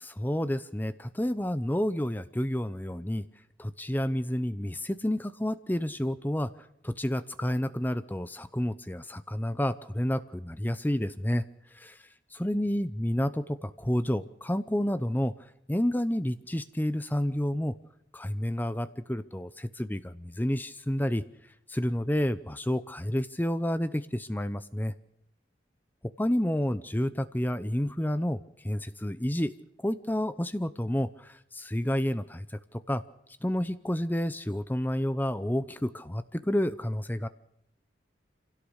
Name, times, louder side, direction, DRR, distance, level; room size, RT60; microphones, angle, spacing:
voice 1, 0.0-3.2 3.6-6.5 6.8-11.4 11.7-15.3 15.7-17.7 18.1-21.2 21.7-24.9 26.2-29.5 29.8-33.0 33.4-37.3, equal, 10° left, 12 dB, 0.7 m, -30 dB
27.0 x 17.0 x 6.5 m, 0.78 s
head